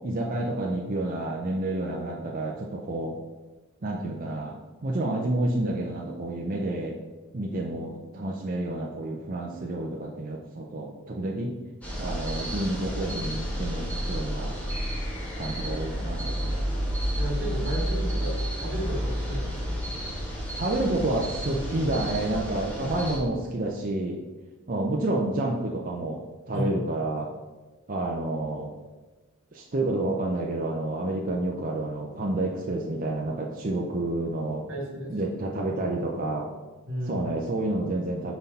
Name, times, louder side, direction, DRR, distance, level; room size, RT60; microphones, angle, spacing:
voice 1, 0.0-3.1 3.8-7.0 7.3-11.5 12.0-14.6 15.3-16.7 20.6-24.2 24.7-26.2 26.5-27.3 27.9-28.7 29.5-34.7 35.1-36.5 37.1-38.3, right 2 dB, 40° right, -2 dB, 0.6 m, -29 dB
sound 1, 11.8-23.2, equal, 5° left, 1.5 m, -31 dB
sound 2, 14.7-17.7, left 3 dB, 45° left, 2.3 m, -49 dB
voice 2, 17.1-19.8 26.5-26.7 34.7-35.1 36.9-37.3, equal, 60° right, -2 dB, 2.3 m, -33 dB
6.1 x 5.4 x 4.2 m, 1.2 s
head